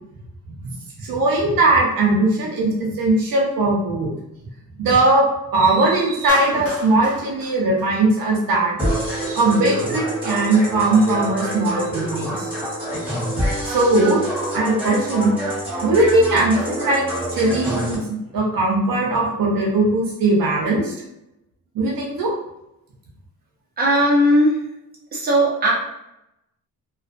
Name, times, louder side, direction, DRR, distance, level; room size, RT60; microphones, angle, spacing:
voice 1, 0.6-4.1 4.8-5.3 5.5-8.7 9.2-12.5 13.7-14.2 14.5-15.4 15.8-17.0 17.3-20.9 21.7-22.3, right 2 dB, 75° right, -3 dB, 0.8 m, -19 dB
Clapping, 6.3-8.6, equal, 55° left, 0.8 m, -33 dB
sound 1, 8.8-17.9, right 1 dB, 5° right, 1.4 m, -26 dB
voice 2, 23.8-24.6 25.1-25.7, equal, 25° right, -5 dB, 0.8 m, -17 dB
2.4 x 2.4 x 2.5 m, 0.87 s
cardioid pair, 125°, 35 cm